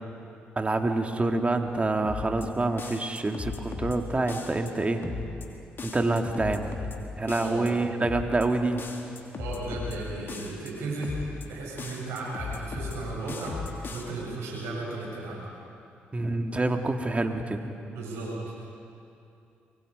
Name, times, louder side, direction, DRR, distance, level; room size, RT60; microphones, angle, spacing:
voice 1, 0.6-5.1 5.8-6.7 7.2-8.9 16.1-17.7, right 2 dB, 25° right, 4 dB, 2.2 m, -27 dB
sound 1, 2.0-2.5 2.8-4.0 4.3-4.7 5.0-5.5 5.8-7.0 7.3-7.7 8.0-8.5 8.8-10.0 10.3-10.7 11.0-11.5 11.8-13.0 13.3-14.0, left 5 dB, 50° left, 3.0 m, -36 dB
voice 2, 7.3-7.7 9.4-13.6 13.9-15.4 17.9-18.5, right 2 dB, 75° right, -4 dB, 7.7 m, -35 dB
25.0 x 23.5 x 5.2 m, 2.6 s
hypercardioid pair, 45°, 5 cm